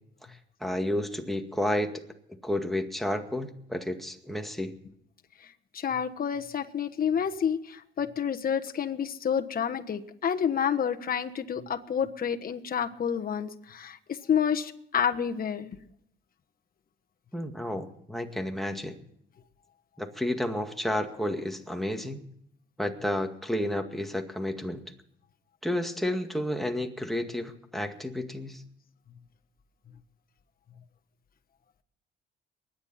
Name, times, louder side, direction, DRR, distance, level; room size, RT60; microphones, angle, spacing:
voice 1, 0.3-1.9 2.4-4.7 17.3-19.0 20.0-22.2 22.8-24.8 25.6-28.6, left 1 dB, ahead, 4 dB, 2.0 m, -31 dB
voice 2, 5.7-15.8, left 8 dB, 50° left, 6 dB, 1.3 m, -29 dB
23.5 x 10.5 x 4.2 m, 0.72 s
cardioid pair, 90°, 20 cm